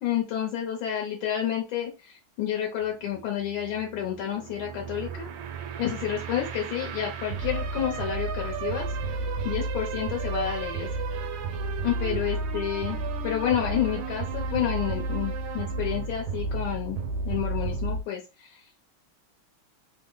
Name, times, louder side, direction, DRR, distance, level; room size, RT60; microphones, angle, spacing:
voice 1, 0.0-5.3 5.8-8.9 9.4-10.9 11.8-13.0 13.2-17.0 17.2-18.6, left 10 dB, 75° left, 0 dB, 1.5 m, -30 dB
sound 1, 2.8-18.0, right 3 dB, 80° right, 1.4 m, -32 dB
3.6 x 2.1 x 3.7 m, 0.28 s
omnidirectional pair, 2.3 m